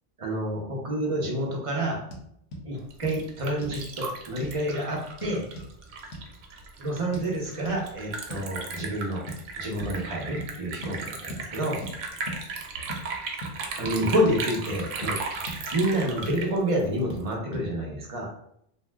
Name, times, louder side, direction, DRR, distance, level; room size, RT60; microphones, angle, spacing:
voice 1, 0.2-2.0 2.6-5.5 6.8-9.3 9.6-11.8 13.8-15.2 15.7-18.3, right 1 dB, 40° right, -1 dB, 0.5 m, -28 dB
sound 1, 2.1-2.2 2.5-2.6 3.0-3.2 3.6-3.8 4.4-4.6 5.2-5.7 6.1-6.3 7.1-7.3 7.7-7.8 8.3-8.5 8.8-8.9 9.3-9.5 9.8-10.0 10.4-10.5 10.8-11.0 11.3-11.4 11.8-12.0 12.3-12.4 12.9-13.0 13.4-13.6 13.8-14.0 14.3-14.4 14.7-15.2 15.5-15.6 16.0-16.4 17.1-17.2 17.5-17.7, equal, 80° left, 1.1 m, -38 dB
Liquid, 2.8-17.3, right 4 dB, 85° right, 0.9 m, -36 dB
2.7 x 2.0 x 3.3 m, 0.73 s
omnidirectional pair, 1.2 m